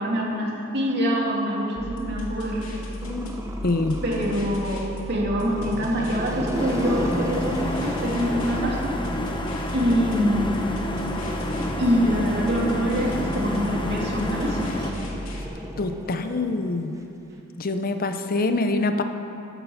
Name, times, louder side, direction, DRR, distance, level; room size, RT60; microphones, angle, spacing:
voice 1, 0.0-2.9 4.0-9.0 9.7-10.7 11.6-14.9, equal, 55° right, -3 dB, 2.6 m, -25 dB
sound 1, 1.8-15.5, equal, 90° left, 2.2 m, -35 dB
voice 2, 3.0-3.3 3.6-4.0 15.8-17.0 17.6-19.0, left 2 dB, 45° left, 8 dB, 0.6 m, -25 dB
Growling, 3.0-4.8 5.3-9.5 10.4-17.0, right 1 dB, 15° right, 0.9 m, -35 dB
sound 2, 6.5-14.9, left 1 dB, 25° left, 1.0 m, -30 dB
11.0 x 10.0 x 7.1 m, 2.9 s
head